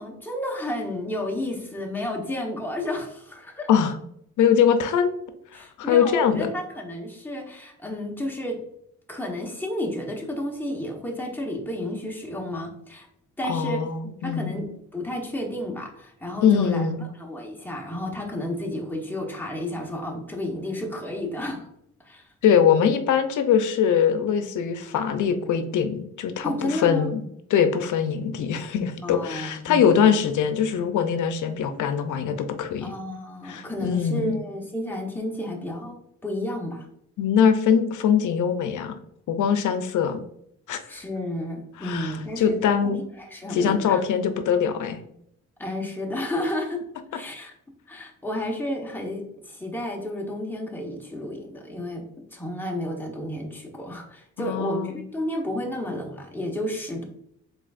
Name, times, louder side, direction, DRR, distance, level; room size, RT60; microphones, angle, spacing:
voice 1, 0.0-3.7 5.5-8.6 9.1-13.1 13.4-13.8 14.2-16.9 17.2-21.7 22.0-22.3 26.4-27.1 29.0-30.1 32.8-36.9 40.9-44.0 45.6-46.8 47.1-47.5 47.9-52.1 52.3-57.0, left 1 dB, 5° left, 0 dB, 1.1 m, -31 dB
voice 2, 4.4-5.1 5.5-6.5 13.4-14.6 16.4-17.1 22.4-27.2 27.5-32.9 33.4-34.4 37.2-38.9 39.3-40.2 40.7-40.8 41.8-43.0 43.5-45.0 54.4-55.0, left 7 dB, 75° left, 9 dB, 0.7 m, -22 dB
4.8 x 3.9 x 2.5 m, 0.72 s
cardioid pair, 80°, 30 cm